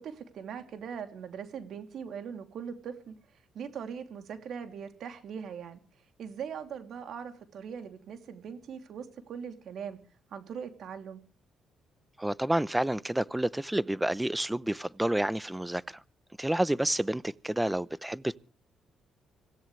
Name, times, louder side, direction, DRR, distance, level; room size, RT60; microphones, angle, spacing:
voice 1, 0.0-10.0 10.3-11.2, right 7 dB, 70° right, 3.1 m, -41 dB
voice 2, 12.2-15.8 16.4-18.4, right 1 dB, 10° right, 0.8 m, -29 dB
26.0 x 16.5 x 3.3 m
cardioid pair, 90°, 0 cm